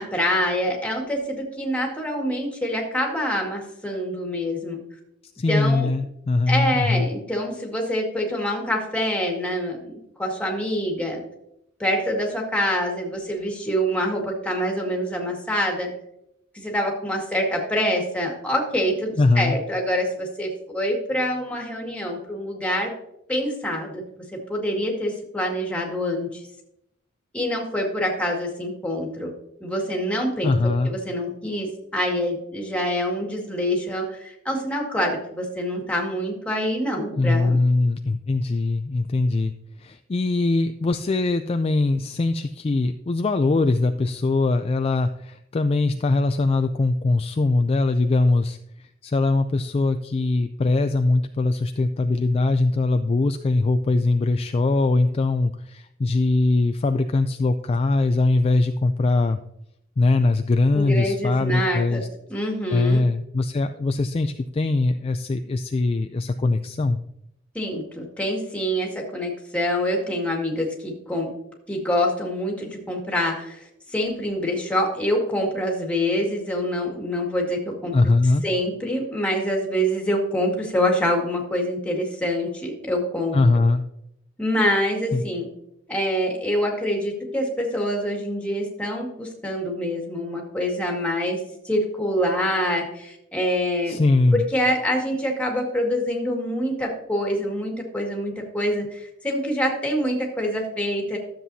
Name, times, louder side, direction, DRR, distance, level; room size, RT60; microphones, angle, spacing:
voice 1, 0.0-4.8 5.5-5.9 6.5-11.2 11.8-15.9 16.5-22.9 23.3-24.0 24.5-26.4 27.3-29.3 29.6-30.5 30.8-37.6 60.7-62.0 62.3-63.1 67.5-71.3 71.7-78.0 78.4-83.4 84.4-85.5 85.9-94.0 94.3-101.2, equal, 5° left, 0 dB, 1.9 m, -25 dB
voice 2, 5.4-7.1 19.2-19.6 30.4-30.9 37.2-39.5 39.8-59.4 60.0-62.1 62.7-67.0 77.9-78.4 83.3-83.8 85.1-85.2 93.9-94.4, left 2 dB, 30° left, 8 dB, 0.3 m, -21 dB
12.5 x 7.5 x 2.7 m, 0.77 s
head